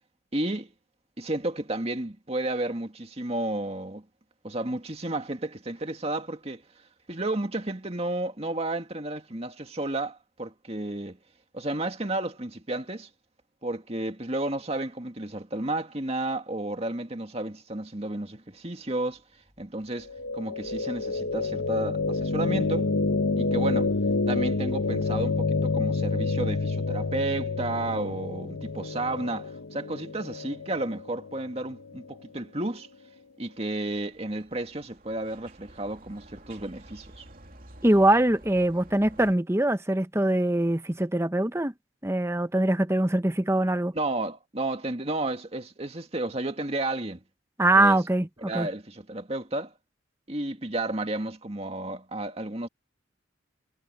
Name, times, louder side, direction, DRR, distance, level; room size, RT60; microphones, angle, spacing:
voice 1, 0.3-0.7 1.2-4.0 4.4-6.6 7.1-11.2 11.5-13.1 13.6-19.2 19.6-22.9 23.4-23.9 24.3-32.9 33.4-37.3 43.9-47.2 47.8-48.0 48.4-49.7 50.3-52.7, right 2 dB, 30° right, 2.0 m, -32 dB
sound 1, 18.8-28.6, equal, 20° left, 6.7 m, -54 dB
sound 2, 20.1-32.1, left 3 dB, 85° left, 1.1 m, -28 dB
sound 3, 33.6-39.4, right 1 dB, 45° right, 3.0 m, -51 dB
voice 2, 37.8-41.7 42.0-44.0 47.6-48.7, right 1 dB, 15° right, 1.0 m, -23 dB
head